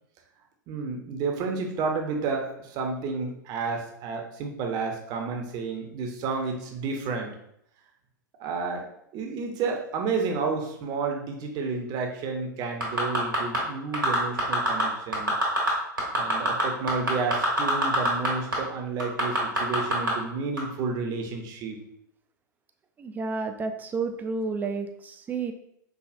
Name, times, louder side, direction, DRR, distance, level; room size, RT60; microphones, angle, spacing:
voice 1, 0.7-7.3 8.4-8.9 9.1-15.3 16.1-21.8, right 4 dB, 40° right, 2 dB, 0.7 m, -31 dB
sound 1, 12.8-13.6 13.9-14.8 15.1-15.7 16.0-18.3 18.5-18.6 19.0-20.1 20.6-20.7, equal, 90° right, 1.4 m, -24 dB
voice 2, 23.0-25.5, right 4 dB, 15° right, 6 dB, 0.4 m, -31 dB
4.8 x 2.4 x 2.5 m, 0.75 s
figure-of-eight pair, 100°, 11 cm